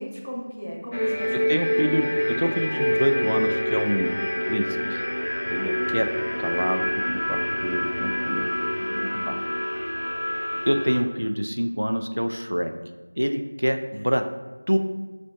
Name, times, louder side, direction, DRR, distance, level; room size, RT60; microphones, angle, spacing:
voice 1, 0.0-1.9 8.8-9.2, equal, 85° left, -1 dB, 1.1 m, -36 dB
sound 1, 0.9-11.0, equal, 40° left, 0.3 m, -26 dB
voice 2, 1.5-2.1 2.4-4.1 4.5-4.6 4.9-5.0 5.5-6.1 6.4-8.5 9.3-9.4 10.7-12.7 13.2-14.2 14.7-14.8, equal, 80° right, 7 dB, 0.3 m, -26 dB
5.0 x 3.7 x 2.2 m, 1.2 s
figure-of-eight pair, 175°, 0 cm